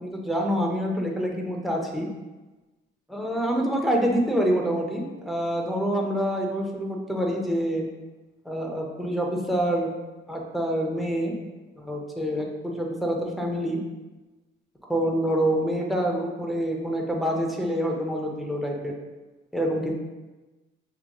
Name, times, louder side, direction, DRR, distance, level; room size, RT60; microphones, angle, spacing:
voice 1, 0.0-2.1 3.1-7.8 8.5-9.9 10.3-11.3 11.8-13.8 14.9-18.9 19.5-19.9, equal, ahead, 0 dB, 0.4 m, -26 dB
5.4 x 3.0 x 2.2 m, 1.1 s
cardioid pair, 160°, 20 cm